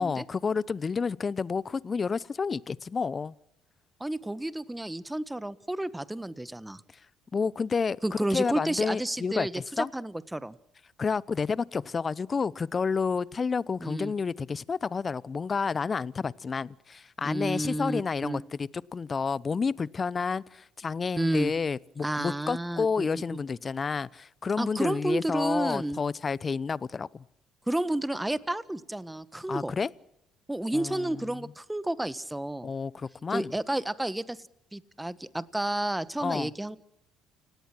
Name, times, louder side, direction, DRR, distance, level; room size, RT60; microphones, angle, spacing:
voice 1, 0.0-3.3 7.3-8.0 8.3-9.9 11.0-27.2 29.5-29.9 30.7-31.5 32.6-33.5 36.2-36.5, left 5 dB, 35° left, 0.8 m, -30 dB
voice 2, 4.0-6.8 8.0-10.6 13.8-14.1 17.2-18.5 21.1-21.5 22.0-23.2 24.6-26.0 27.7-29.7 30.5-32.7 33.3-34.4 34.7-36.8, right 1 dB, 10° right, 1.4 m, -31 dB
29.5 x 17.5 x 6.2 m
hypercardioid pair, 60°, 0 cm